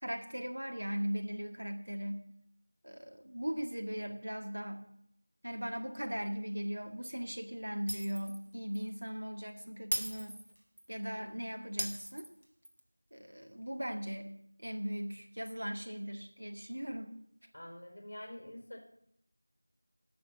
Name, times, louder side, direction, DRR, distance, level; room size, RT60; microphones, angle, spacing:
voice 1, 0.0-2.2 2.8-4.8 5.4-10.4 10.9-12.3 13.1-17.2, equal, 85° right, 4 dB, 1.9 m, -39 dB
Shatter, 7.9-8.4 8.7-8.9 9.9-10.9 11.8-12.8, equal, 60° right, 1.6 m, -38 dB
voice 2, 17.5-18.8, left 1 dB, 30° left, 4 dB, 1.6 m, -47 dB
11.5 x 6.3 x 7.3 m, 0.73 s
figure-of-eight pair, 180°, 0 cm